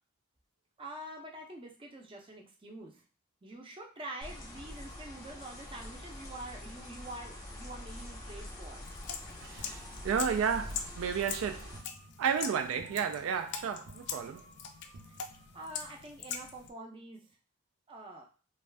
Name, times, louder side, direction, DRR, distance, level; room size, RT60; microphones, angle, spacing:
voice 1, 0.8-3.0 3.4-8.8 15.5-17.4 17.9-18.2, right 1 dB, 25° right, 0.5 m, -46 dB
sound 1, 4.2-11.8, left 1 dB, 15° left, 0.7 m, -45 dB
sound 2, 8.8-16.7, left 7 dB, 55° left, 0.3 m, -43 dB
voice 2, 9.4-11.7 12.2-14.5, right 7 dB, 80° right, 0.3 m, -32 dB
sound 3, 9.6-15.9, right 2 dB, 65° right, 0.7 m, -55 dB
2.5 x 2.3 x 3.2 m
head